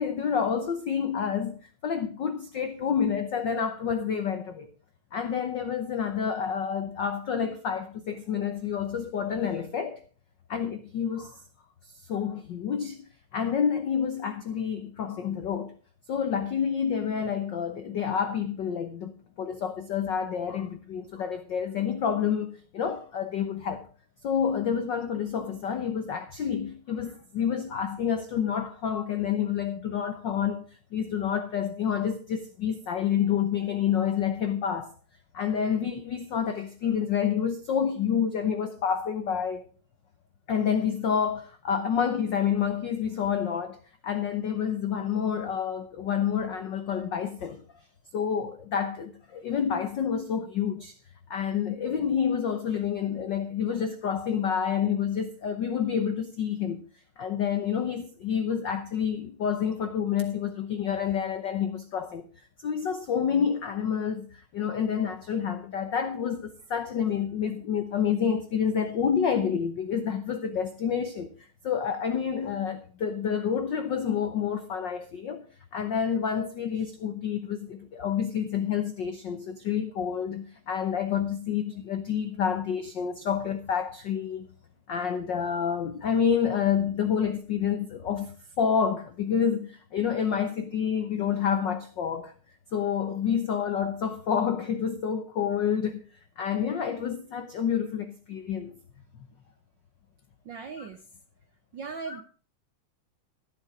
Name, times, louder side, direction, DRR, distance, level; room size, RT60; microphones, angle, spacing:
voice 1, 0.0-4.7 5.1-10.0 10.5-11.4 12.0-13.0 13.3-15.7 16.1-23.9 24.2-34.9 35.3-39.7 40.5-47.8 48.1-50.9 51.3-56.8 57.2-62.3 62.6-75.4 75.7-84.5 84.9-92.3 92.7-96.0 96.4-98.8 100.8-100.9 102.1-102.2, left 7 dB, 80° left, 1.0 m, -28 dB
voice 2, 100.5-101.0 101.7-102.2, right 5 dB, 80° right, 1.0 m, -38 dB
14.0 x 8.7 x 5.0 m
omnidirectional pair, 3.4 m